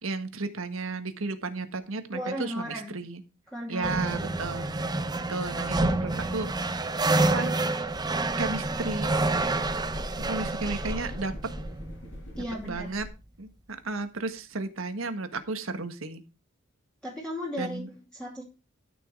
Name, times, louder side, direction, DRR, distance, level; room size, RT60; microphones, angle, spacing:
voice 1, 0.0-3.2 3.7-4.7 5.3-7.6 8.4-9.1 10.2-11.3 12.7-13.1 13.4-16.2 17.6-17.9, right 3 dB, 85° right, 9 dB, 1.6 m, -33 dB
voice 2, 2.1-3.0 3.5-4.3 12.4-12.9 17.0-18.4, equal, 5° left, -3 dB, 2.7 m, -36 dB
sound 1, 3.8-12.4, right 2 dB, 20° right, 0.7 m, -28 dB
sound 2, 7.8-13.1, equal, 65° left, 5.4 m, -41 dB
13.0 x 6.3 x 4.6 m, 0.30 s
head